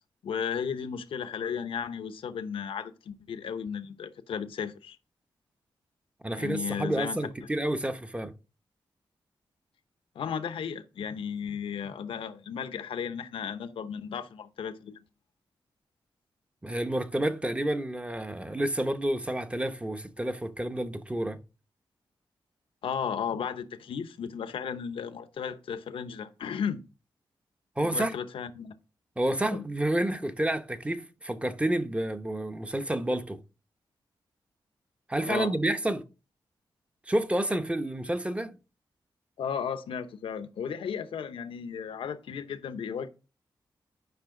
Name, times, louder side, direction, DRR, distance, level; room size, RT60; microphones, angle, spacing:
voice 1, 0.2-5.0 6.4-7.2 10.1-15.0 22.8-26.8 27.8-28.7 29.5-29.6 35.2-35.5 39.4-43.1, left 7 dB, 85° left, 0.9 m, -34 dB
voice 2, 6.2-8.3 16.6-21.4 27.8-28.1 29.2-33.4 35.1-36.0 37.1-38.6, right 1 dB, 15° right, 1.0 m, -29 dB
10.5 x 5.6 x 3.8 m
cardioid pair, 75°, 9 cm